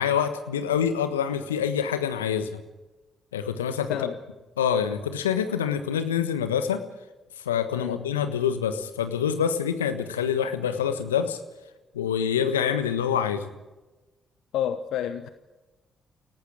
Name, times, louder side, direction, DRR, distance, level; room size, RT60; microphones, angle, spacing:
voice 1, 0.0-2.6 3.3-4.1 4.6-6.8 7.4-11.4 11.9-13.5, left 8 dB, 85° left, 9 dB, 1.4 m, -26 dB
voice 2, 14.5-15.3, left 10 dB, 70° left, 10 dB, 1.0 m, -29 dB
29.0 x 18.0 x 5.0 m, 1.1 s
hypercardioid pair, 40°, 0 cm